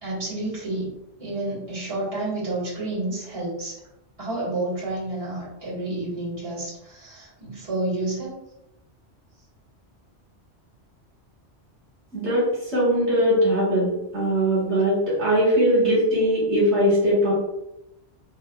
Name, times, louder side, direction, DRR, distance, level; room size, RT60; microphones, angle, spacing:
voice 1, 0.0-0.9 1.2-3.8 4.2-8.4, right 2 dB, 30° right, -8 dB, 1.7 m, -30 dB
voice 2, 12.1-17.3, equal, 70° right, -7 dB, 1.7 m, -21 dB
5.6 x 2.6 x 2.3 m, 0.87 s
omnidirectional pair, 1.2 m